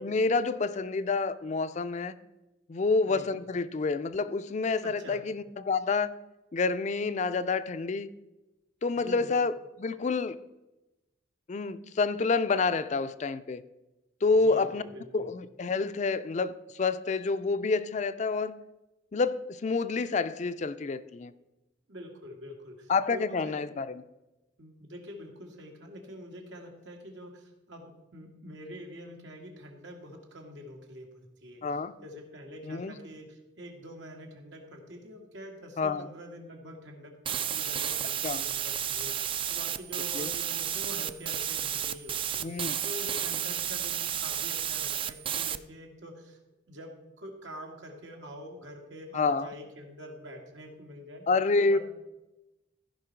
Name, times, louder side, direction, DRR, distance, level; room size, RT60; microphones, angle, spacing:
voice 1, 0.0-2.1 2.7-6.1 6.5-8.1 8.8-10.4 11.5-13.6 14.2-14.8 15.1-18.6 19.1-21.3 22.9-24.0 31.6-31.9 32.7-32.9 35.8-36.1 38.2-38.4 40.1-40.3 42.4-42.8 49.1-49.5 51.3-51.8, left 4 dB, 40° left, 0.4 m, -28 dB
voice 2, 4.8-5.2 8.9-9.4 14.3-15.3 21.9-23.6 24.6-31.1 31.4-31.6 32.0-46.4 46.7-51.2 51.6-51.8, equal, 85° right, 1.8 m, -45 dB
sound 1, 37.3-45.6, right 10 dB, 30° right, 0.3 m, -32 dB
14.5 x 5.4 x 4.5 m
head